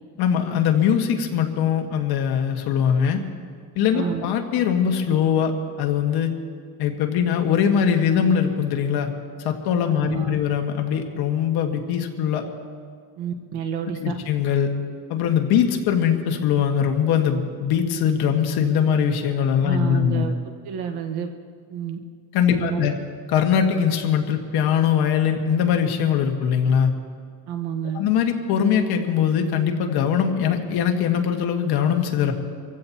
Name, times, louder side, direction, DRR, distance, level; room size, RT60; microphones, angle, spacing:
voice 1, 0.2-3.2 3.7-6.3 6.8-9.1 9.4-12.4 14.0-14.7 15.1-20.3 22.3-22.9 23.3-26.9 27.9-32.3, left 8 dB, 65° left, 4 dB, 1.6 m, -21 dB
voice 2, 3.9-4.3 9.9-10.4 13.2-14.1 19.6-20.3 20.6-21.3 21.7-22.0 22.5-22.9 27.5-28.0, right 8 dB, 65° right, 5 dB, 1.4 m, -29 dB
26.0 x 15.5 x 2.9 m, 2.1 s
cardioid pair, 155°, 42 cm